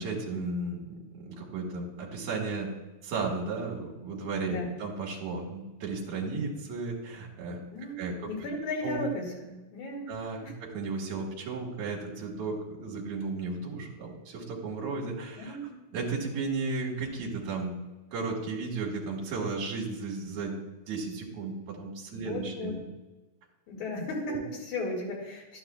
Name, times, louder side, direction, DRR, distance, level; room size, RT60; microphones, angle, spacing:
voice 1, 0.0-2.7 3.0-7.6 8.0-8.3 8.8-9.0 10.1-15.6 15.9-17.7 18.1-22.8 24.3-24.4, right 3 dB, 55° right, -2 dB, 2.7 m, -34 dB
voice 2, 7.7-10.1 10.4-10.5 15.4-15.8 22.2-22.7 23.7-25.6, left 2 dB, 50° left, -2 dB, 3.4 m, -35 dB
11.5 x 10.5 x 2.3 m, 1.1 s
omnidirectional pair, 4.7 m